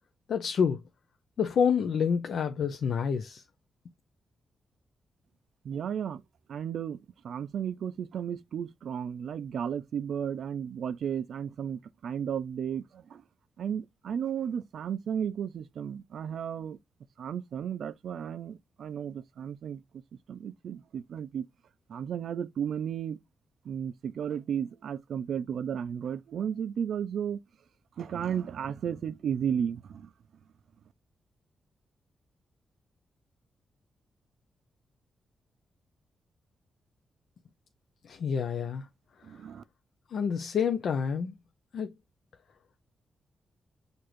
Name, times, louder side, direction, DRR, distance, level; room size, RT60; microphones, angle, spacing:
voice 1, 0.3-0.8 1.4-3.4 38.0-38.9 40.1-41.4 41.7-41.9, left 7 dB, 70° left, 0.5 m, -28 dB
voice 2, 5.6-6.2 6.5-7.0 7.2-13.2 13.6-16.8 17.2-19.8 20.3-21.5 21.9-23.2 23.7-27.4 28.0-30.1 39.2-39.6, right 8 dB, 75° right, 0.4 m, -34 dB
6.6 x 2.6 x 3.0 m
wide cardioid pair, 120°, 0 cm